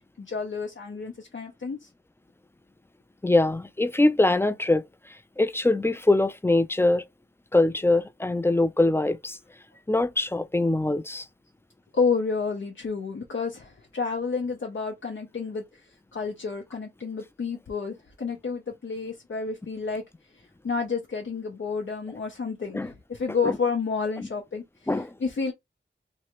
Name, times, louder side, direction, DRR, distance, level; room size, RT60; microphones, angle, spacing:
voice 1, 0.0-1.9 11.9-20.0 20.3-25.5, left 5 dB, 80° left, 0.7 m, -30 dB
voice 2, 3.2-4.8 5.4-7.0 7.5-9.4 9.9-11.3 22.7-22.9 23.4-23.6 24.9-25.1, left 2 dB, 10° left, 0.3 m, -23 dB
3.1 x 2.4 x 2.9 m
wide cardioid pair, 70°, 20 cm